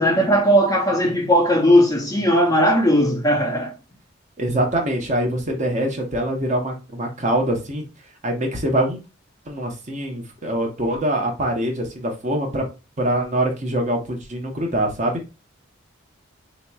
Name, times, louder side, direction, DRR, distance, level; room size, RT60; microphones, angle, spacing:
voice 1, 0.0-3.7, equal, 15° left, 0.5 m, -17 dB
voice 2, 4.4-7.8 8.2-9.0 9.5-12.7 13.0-15.2, right 1 dB, 35° right, 0.8 m, -24 dB
3.9 x 2.9 x 2.2 m
head